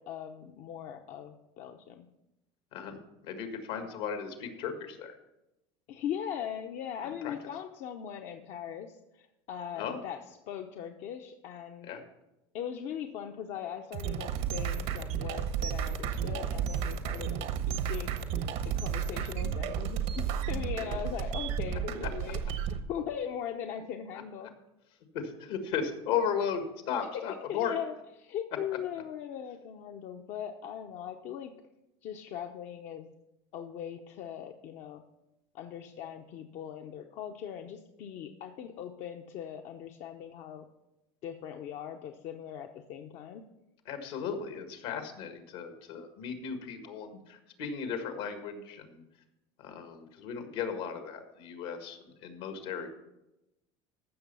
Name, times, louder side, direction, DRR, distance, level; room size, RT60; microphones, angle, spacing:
voice 1, 0.0-2.1 3.7-3.9 5.9-11.9 12.5-18.2 18.6-22.4 22.9-24.5 27.1-27.2 27.5-27.9 28.2-31.5 32.0-33.1 33.5-35.0 35.5-40.7 41.2-43.4 52.6-52.9, left 9 dB, 60° left, 5 dB, 0.8 m, -40 dB
voice 2, 2.7-5.2 7.0-7.3 9.8-10.0 11.8-12.0 25.1-27.8 43.9-49.0 49.6-52.9, left 7 dB, 80° left, 6 dB, 1.8 m, -36 dB
sound 1, 13.9-22.8, right 8 dB, 70° right, 1.1 m, -32 dB
14.5 x 6.1 x 5.5 m, 0.94 s
supercardioid pair, 105°, 14 cm